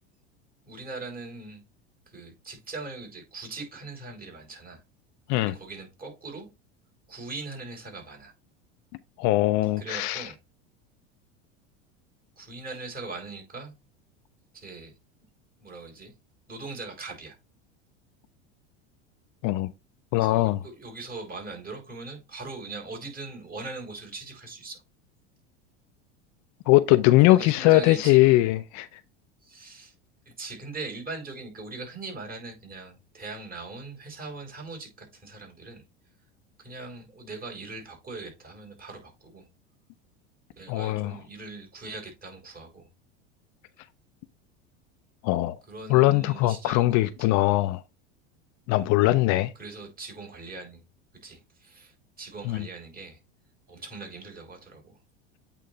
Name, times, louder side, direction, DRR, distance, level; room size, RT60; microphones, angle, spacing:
voice 1, 0.6-1.6 2.1-4.8 5.4-6.5 7.1-8.3 9.8-10.4 12.4-13.7 14.5-14.9 15.6-16.1 16.5-17.4 20.1-24.8 27.2-28.5 29.4-29.9 30.4-35.8 36.6-39.4 40.6-42.9 45.7-47.4 49.6-50.8 51.2-53.2 53.7-55.0, right 3 dB, 25° right, 4.0 m, -41 dB
voice 2, 9.2-10.3 19.4-19.7 20.1-20.6 26.7-29.0 40.7-41.1 45.2-45.6 45.9-47.8 48.7-49.5 52.4-52.6, left 17 dB, 55° left, 0.6 m, -21 dB
8.4 x 3.3 x 3.8 m
hypercardioid pair, 95°, 34 cm